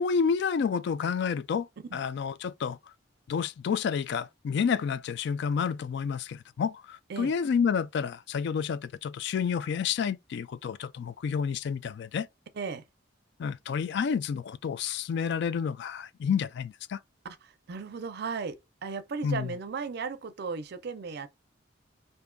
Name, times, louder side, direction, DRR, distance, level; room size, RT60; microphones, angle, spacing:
voice 1, 0.0-2.8 3.3-12.3 13.4-17.0 19.2-19.5, left 6 dB, 65° left, 0.3 m, -29 dB
voice 2, 17.2-21.3, right 5 dB, 55° right, 0.5 m, -36 dB
3.6 x 2.6 x 2.2 m
head